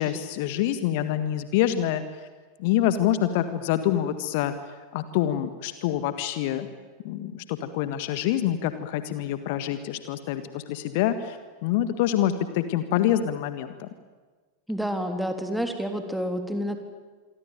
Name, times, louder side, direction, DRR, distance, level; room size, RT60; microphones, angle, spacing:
voice 1, 0.0-2.0 2.6-4.5 4.9-6.7 7.0-11.4 11.6-13.9, left 11 dB, 50° left, 11 dB, 1.7 m, -26 dB
voice 2, 14.7-16.8, equal, ahead, 5 dB, 3.5 m, -29 dB
27.5 x 23.5 x 9.2 m, 1.4 s
figure-of-eight pair, 90°, 0 cm